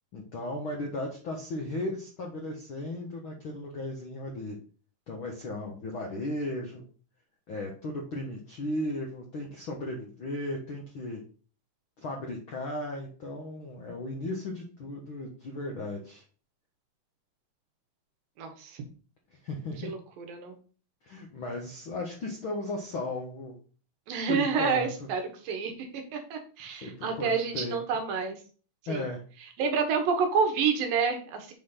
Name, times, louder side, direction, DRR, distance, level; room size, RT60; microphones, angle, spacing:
voice 1, 0.1-4.6 5.1-6.8 7.5-11.2 12.0-16.2 19.4-19.9 21.0-23.5 24.3-25.1 26.7-27.8 28.9-29.2, left 1 dB, 55° left, 0 dB, 1.5 m, -36 dB
voice 2, 18.4-18.8 19.8-20.5 24.1-28.4 28.9-29.0 29.6-31.5, right 5 dB, 80° right, 5 dB, 2.9 m, -29 dB
8.4 x 4.0 x 5.7 m, 0.39 s
omnidirectional pair, 4.0 m